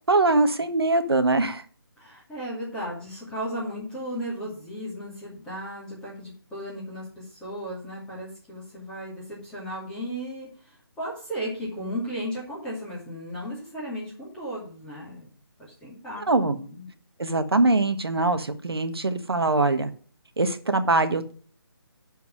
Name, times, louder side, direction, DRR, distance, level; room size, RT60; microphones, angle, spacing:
voice 1, 0.1-1.6 16.3-16.6 17.2-19.9 20.4-21.3, right 2 dB, 75° right, 8 dB, 1.5 m, -22 dB
voice 2, 2.0-15.3 15.6-16.3 16.6-16.9, equal, 5° left, -7 dB, 2.5 m, -35 dB
11.5 x 4.6 x 6.3 m, 0.43 s
figure-of-eight pair, 155°, 13 cm